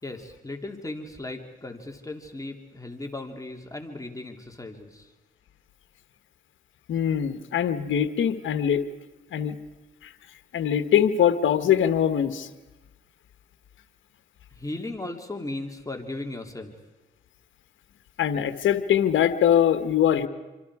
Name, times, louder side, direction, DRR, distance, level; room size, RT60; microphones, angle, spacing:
voice 1, 0.0-5.1 14.5-16.7, left 2 dB, 15° left, 3 dB, 3.0 m, -36 dB
voice 2, 6.9-8.8 9.3-9.6 10.5-12.5 18.2-20.3, left 9 dB, 80° left, 10 dB, 1.3 m, -22 dB
27.5 x 25.5 x 4.9 m, 1.1 s
cardioid pair, 60°, 20 cm